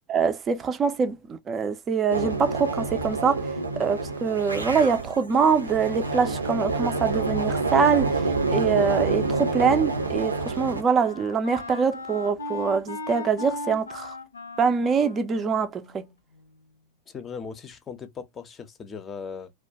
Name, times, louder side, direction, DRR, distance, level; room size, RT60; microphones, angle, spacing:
voice 1, 0.1-3.5 3.8-14.1 14.6-16.0, right 5 dB, 25° right, 0.4 m, -24 dB
sound 1, 2.1-10.8, right 3 dB, 80° right, 0.5 m, -27 dB
Wind instrument woodwind instrument, 9.9-16.6, left 3 dB, 75° left, 0.6 m, -39 dB
voice 2, 17.1-19.5, left 6 dB, 20° left, 0.6 m, -38 dB
2.3 x 2.2 x 2.7 m
figure-of-eight pair, 90°, 0 cm